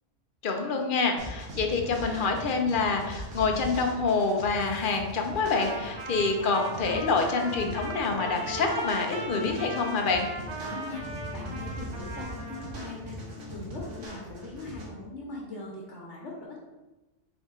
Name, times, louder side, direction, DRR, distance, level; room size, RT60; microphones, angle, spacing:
voice 1, 0.4-10.2, left 4 dB, 55° left, 3 dB, 0.7 m, -27 dB
sound 1, 1.2-14.9, right 1 dB, 85° right, 1.3 m, -41 dB
Trumpet, 5.4-12.8, right 2 dB, 40° right, 0.4 m, -38 dB
Acoustic guitar, 6.1-14.1, left 3 dB, 5° right, 1.1 m, -46 dB
voice 2, 10.6-11.0 11.3-13.2 13.5-16.6, left 3 dB, 75° left, -2 dB, 1.2 m, -40 dB
4.1 x 3.6 x 3.6 m, 1.1 s
omnidirectional pair, 1.2 m